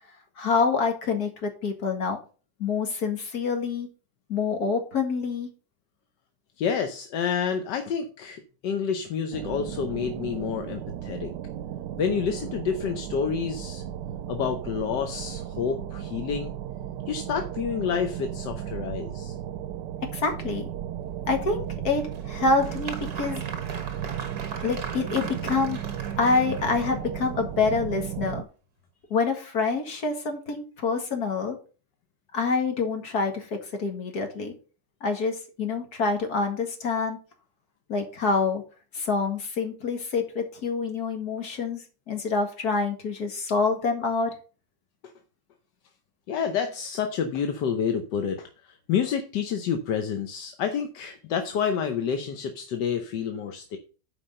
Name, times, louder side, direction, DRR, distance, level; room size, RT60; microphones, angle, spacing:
voice 1, 0.4-2.2 2.6-3.9 4.3-5.5 20.1-20.7 21.3-23.4 24.5-25.8 26.2-28.5 29.1-31.6 32.3-34.5 35.0-37.2 37.9-38.6 38.9-44.3, left 4 dB, 60° left, 4 dB, 2.4 m, -26 dB
voice 2, 6.6-11.3 12.0-13.8 14.3-16.5 17.1-19.4 46.3-53.8, left 7 dB, 80° left, 6 dB, 1.5 m, -29 dB
sound 1, 9.3-28.4, right 10 dB, 85° right, 1.2 m, -35 dB
Applause, 21.9-27.2, right 5 dB, 65° right, 1.8 m, -39 dB
8.6 x 5.0 x 6.5 m, 0.36 s
omnidirectional pair, 1.9 m